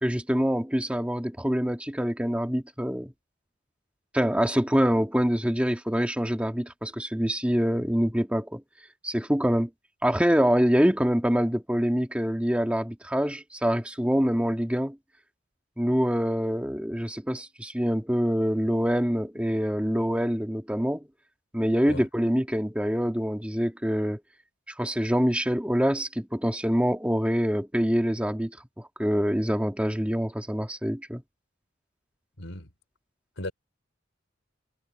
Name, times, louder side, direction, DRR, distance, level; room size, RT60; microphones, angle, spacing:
voice 1, 0.0-3.1 4.1-8.6 9.0-9.7 10.0-15.0 15.8-21.1 21.5-24.2 24.8-28.5 28.8-31.2, equal, 5° right, 1.8 m, -25 dB
voice 2, 32.4-32.7 33.4-33.5, left 1 dB, 75° left, 3.8 m, -36 dB
head